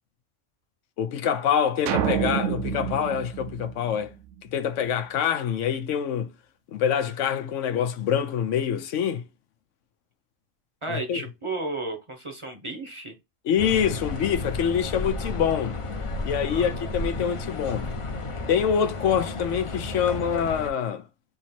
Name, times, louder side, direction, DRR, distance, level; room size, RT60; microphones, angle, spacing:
voice 1, 1.0-4.1 4.5-6.3 6.7-9.2 10.9-11.2 13.4-15.8 16.2-17.8 18.5-21.0, left 8 dB, 80° left, 1.0 m, -25 dB
sound 1, 1.9-4.3, right 10 dB, 85° right, 0.9 m, -28 dB
voice 2, 10.8-13.1 16.5-16.9, right 2 dB, 30° right, 0.7 m, -33 dB
sound 2, 13.6-20.7, left 2 dB, 35° left, 0.5 m, -32 dB
3.6 x 2.9 x 4.3 m
omnidirectional pair, 1.2 m